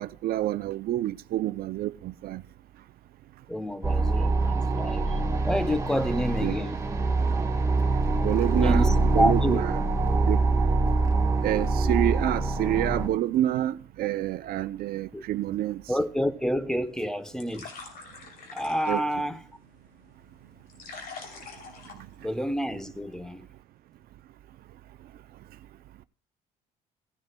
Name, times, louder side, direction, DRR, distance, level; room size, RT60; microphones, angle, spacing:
voice 1, 0.0-2.4 6.4-6.5 8.2-9.7 10.3-10.4 11.4-15.8 18.9-19.0, right 13 dB, 65° right, 0.5 m, -28 dB
voice 2, 3.5-6.8 8.6-9.6 15.1-15.2 15.9-17.7 18.5-19.4 22.2-23.5, equal, 5° left, 0.8 m, -29 dB
sound 1, 3.8-13.1, right 3 dB, 20° right, 1.6 m, -24 dB
sound 2, 16.8-22.8, left 4 dB, 60° left, 3.0 m, -46 dB
17.0 x 10.5 x 2.2 m
cardioid pair, 110°, 17 cm